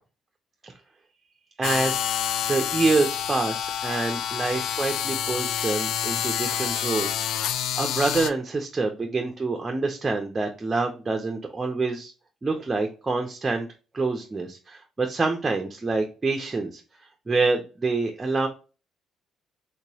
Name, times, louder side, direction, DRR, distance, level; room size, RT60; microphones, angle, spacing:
sound 1, 1.6-8.3, left 9 dB, 80° left, 0.3 m, -28 dB
voice 1, 1.6-2.1 2.4-12.1 12.4-13.7 13.9-16.8 17.3-18.5, right 3 dB, 20° right, 3 dB, 0.6 m, -26 dB
3.6 x 2.9 x 2.7 m, 0.33 s
cardioid pair, 110°, 0 cm